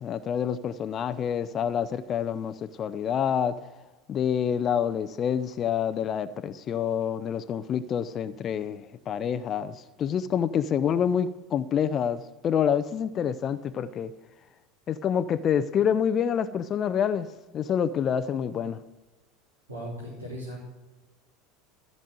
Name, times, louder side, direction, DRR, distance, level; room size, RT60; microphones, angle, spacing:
voice 1, 0.0-3.6 4.1-14.1 14.9-17.3 17.5-18.8, left 8 dB, 35° left, 14 dB, 0.5 m, -27 dB
voice 2, 19.7-20.7, equal, 80° right, -6 dB, 3.2 m, -37 dB
14.0 x 5.3 x 7.7 m, 1.2 s
figure-of-eight pair, 75°, 0 cm